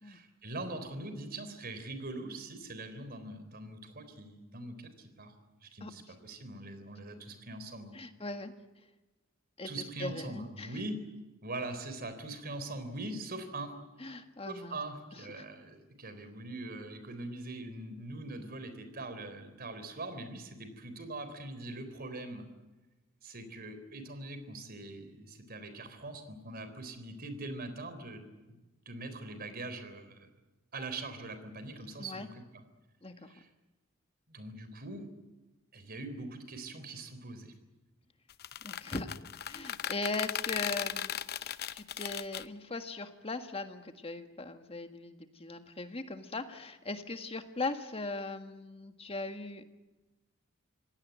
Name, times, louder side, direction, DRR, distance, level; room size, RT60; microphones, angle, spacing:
voice 1, 0.0-5.3 5.6-7.9 9.6-11.0 11.4-13.7 14.5-22.5 23.2-28.6 28.9-30.3 30.7-32.6 33.3-33.5 34.3-35.1 35.7-37.5, right 2 dB, 50° right, 10 dB, 3.8 m, -42 dB
voice 2, 7.9-8.5 9.6-9.7 10.0-10.7 14.0-14.8 15.4-15.5 32.0-32.3 33.0-33.3 38.6-39.1 39.4-49.6, left 3 dB, 30° left, 7 dB, 1.7 m, -39 dB
sound 1, 38.3-42.4, left 10 dB, 50° left, 0.7 m, -37 dB
25.5 x 17.5 x 9.4 m, 1.1 s
head